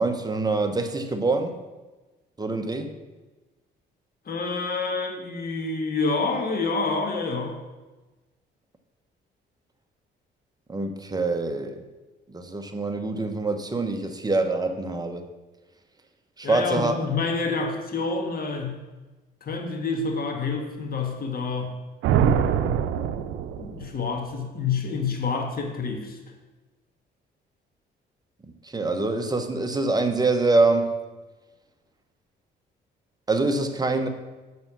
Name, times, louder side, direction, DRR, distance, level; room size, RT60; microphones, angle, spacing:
voice 1, 0.0-1.6 2.4-2.9 10.7-11.8 12.3-15.3 16.4-16.9 28.6-30.9 33.3-34.1, right 3 dB, 20° right, 6 dB, 1.0 m, -25 dB
voice 2, 4.2-7.6 16.4-18.8 19.4-21.7 23.6-26.2, left 4 dB, 50° left, 4 dB, 1.6 m, -28 dB
sound 1, 22.0-24.0, right 8 dB, 90° right, 0.5 m, -23 dB
6.9 x 6.5 x 6.1 m, 1.2 s
cardioid pair, 90°, 20 cm